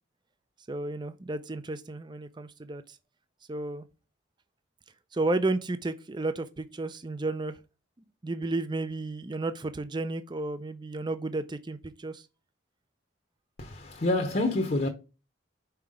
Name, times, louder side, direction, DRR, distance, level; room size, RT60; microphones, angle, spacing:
voice 1, 0.7-3.0 3.5-3.8 5.1-7.6 8.2-12.3, right 2 dB, 25° right, 0.5 m, -32 dB
voice 2, 13.6-14.9, left 2 dB, 40° left, 0.9 m, -27 dB
5.7 x 4.6 x 4.9 m
head